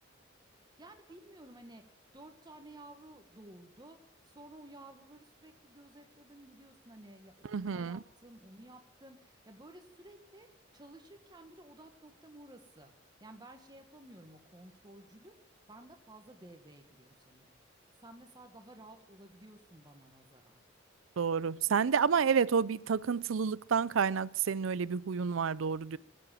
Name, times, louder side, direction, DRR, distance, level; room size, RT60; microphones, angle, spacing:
voice 1, 0.8-10.5 10.7-12.9 13.2-15.3 15.7-17.6 18.0-20.6, right 1 dB, 20° right, 1.7 m, -54 dB
voice 2, 7.5-8.0 21.2-26.0, right 6 dB, 90° right, 0.5 m, -29 dB
20.0 x 7.9 x 7.5 m
head